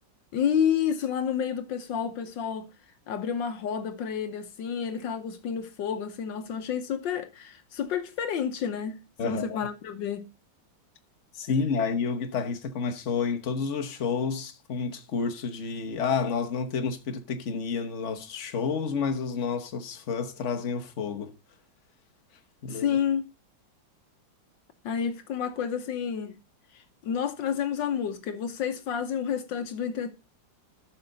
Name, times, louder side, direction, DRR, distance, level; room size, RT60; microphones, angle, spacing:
voice 1, 0.3-2.7 3.1-10.2 22.7-23.2 24.8-26.4 26.7-30.1, left 8 dB, 70° left, 1.5 m, -30 dB
voice 2, 9.2-9.6 11.3-21.3 22.6-22.9, left 5 dB, 45° left, 1.1 m, -30 dB
13.0 x 5.8 x 3.8 m
omnidirectional pair, 2.2 m